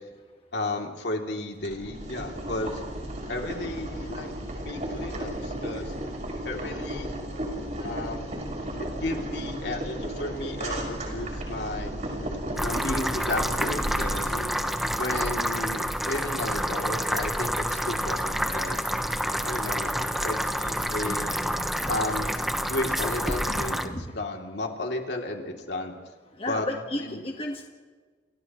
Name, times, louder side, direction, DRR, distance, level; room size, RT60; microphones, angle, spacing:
voice 1, 0.5-2.8 3.3-5.9 6.4-7.1 7.8-8.3 8.8-11.9 12.6-14.3 15.0-18.9 19.4-19.9 20.2-21.4 21.9-23.8 24.1-25.9 26.5-26.7 26.9-27.2, left 2 dB, 75° left, 1 dB, 3.0 m, -33 dB
Boiling, 1.6-14.4, right 1 dB, 45° right, 6.0 m, -34 dB
sound 1, 12.6-23.9, equal, ahead, 1.1 m, -28 dB
voice 2, 14.3-14.8 21.0-21.4 21.8-22.0 23.4-24.2 26.4-27.7, left 1 dB, 35° left, 2 dB, 1.6 m, -35 dB
30.0 x 28.5 x 3.2 m, 1.4 s
head